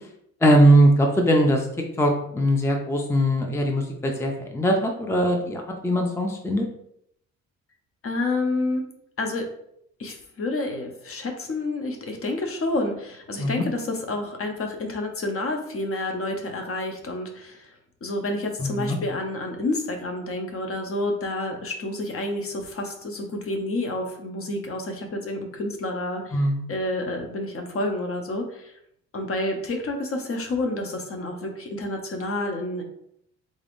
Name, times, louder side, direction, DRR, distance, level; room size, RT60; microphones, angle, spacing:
voice 1, 0.4-1.7 2.0-6.7 13.4-13.6 18.6-19.0 26.3-26.6, right 1 dB, 10° left, 3 dB, 0.5 m, -20 dB
voice 2, 8.0-8.8 9.2-9.5 10.0-17.7 18.0-26.4 26.7-28.7 29.1-32.8, left 2 dB, 50° left, 3 dB, 0.8 m, -29 dB
3.8 x 3.4 x 2.6 m, 0.72 s
cardioid pair, 90°, 30 cm